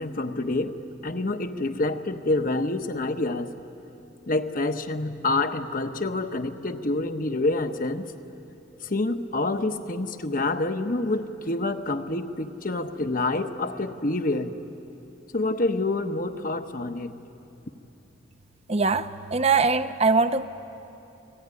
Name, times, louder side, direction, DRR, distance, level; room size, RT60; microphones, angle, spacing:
voice 1, 0.0-3.5 4.3-8.0 8.8-14.5 15.3-17.2, left 2 dB, 45° left, 8 dB, 1.1 m, -27 dB
voice 2, 18.7-20.5, right 4 dB, 35° right, 11 dB, 0.8 m, -22 dB
29.5 x 20.0 x 9.8 m, 2.9 s
head